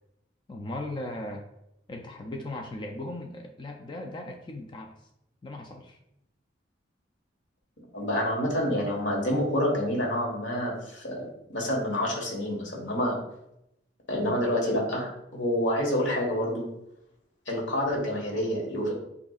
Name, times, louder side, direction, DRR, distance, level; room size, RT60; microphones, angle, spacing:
voice 1, 0.5-1.5 1.9-4.9 5.4-6.0, left 1 dB, 25° left, 3 dB, 0.4 m, -37 dB
voice 2, 7.9-11.2 11.5-13.1 14.1-16.6 17.5-18.9, left 1 dB, 85° left, -1 dB, 1.5 m, -28 dB
8.0 x 2.7 x 2.4 m, 0.81 s
head